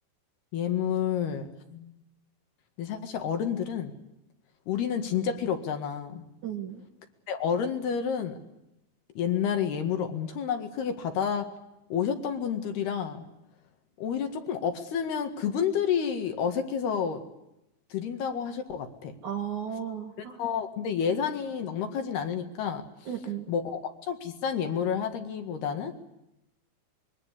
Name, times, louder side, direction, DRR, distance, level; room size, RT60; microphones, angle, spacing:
voice 1, 0.5-1.9 2.8-3.9 4.7-6.2 7.3-8.4 9.2-11.5 11.9-13.3 14.0-17.2 17.9-19.2 20.4-22.9 23.5-26.0, left 7 dB, 65° left, 6 dB, 3.7 m, -30 dB
voice 2, 6.4-6.8 19.2-20.4 23.1-23.5, right 9 dB, 55° right, 4 dB, 2.5 m, -35 dB
25.5 x 22.5 x 8.3 m, 0.86 s
omnidirectional pair, 5.4 m